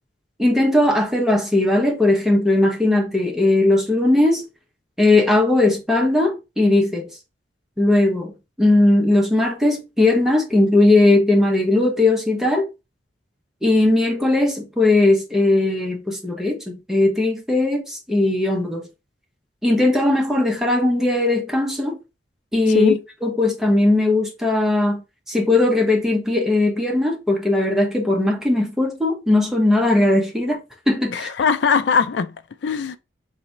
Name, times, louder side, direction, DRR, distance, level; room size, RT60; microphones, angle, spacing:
voice 1, 0.4-4.4 5.0-7.0 7.8-8.3 8.6-12.7 13.6-18.9 19.6-22.0 22.5-22.9 23.2-25.0 25.3-30.6 30.9-31.3, left 2 dB, 5° right, 0.8 m, -18 dB
voice 2, 31.1-32.3 32.6-33.0, left 6 dB, 70° left, 0.4 m, -20 dB
3.0 x 2.7 x 4.2 m
head